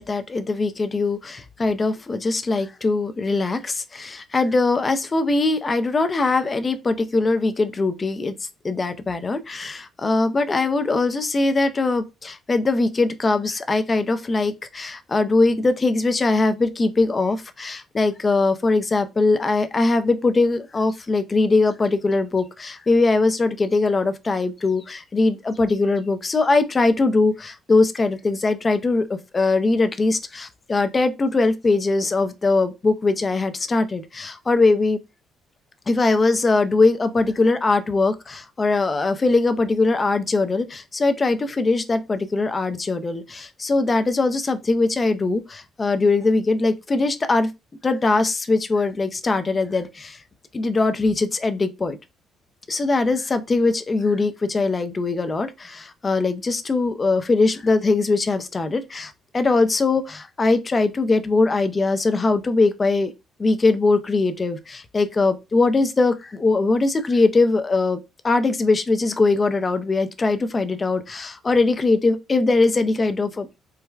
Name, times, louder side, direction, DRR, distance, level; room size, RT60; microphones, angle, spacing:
voice 1, 0.0-35.0 35.9-47.5 47.8-50.2 50.5-52.0 52.7-63.1 63.4-68.0 68.2-73.5, left 3 dB, 30° left, 0.5 m, -21 dB
4.5 x 2.2 x 2.3 m
cardioid pair, 100°, 0 cm